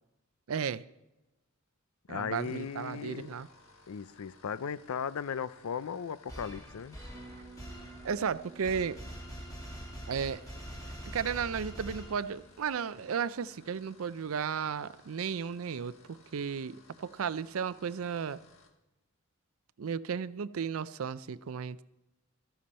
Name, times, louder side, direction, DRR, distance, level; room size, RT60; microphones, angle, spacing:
voice 1, 0.5-0.8 2.1-3.5 8.0-9.0 10.1-18.4 19.8-21.8, right 6 dB, 75° right, 0.5 m, -34 dB
voice 2, 2.1-3.3 3.9-7.0, left 7 dB, 85° left, 0.5 m, -37 dB
sound 1, 2.3-18.8, left 3 dB, 70° left, 1.5 m, -61 dB
sound 2, 6.3-12.6, equal, 15° left, 2.3 m, -45 dB
Bass guitar, 7.1-15.2, right 4 dB, 40° right, 1.1 m, -57 dB
14.0 x 13.0 x 4.3 m
head